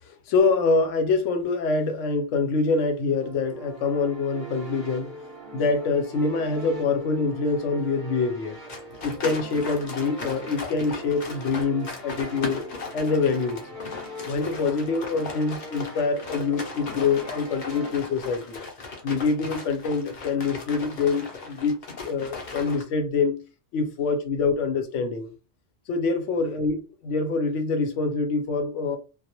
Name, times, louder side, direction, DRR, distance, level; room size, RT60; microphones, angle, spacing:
voice 1, 0.1-5.1 5.5-8.6 9.0-12.6 12.9-13.6 14.3-18.6 19.0-23.4 23.7-25.3 25.9-29.0, left 4 dB, 80° left, 0.9 m, -25 dB
sound 1, 3.1-17.9, right 1 dB, 35° right, 0.7 m, -41 dB
sound 2, 8.7-22.8, left 3 dB, 50° left, 0.6 m, -38 dB
2.2 x 2.0 x 2.8 m
omnidirectional pair, 1.3 m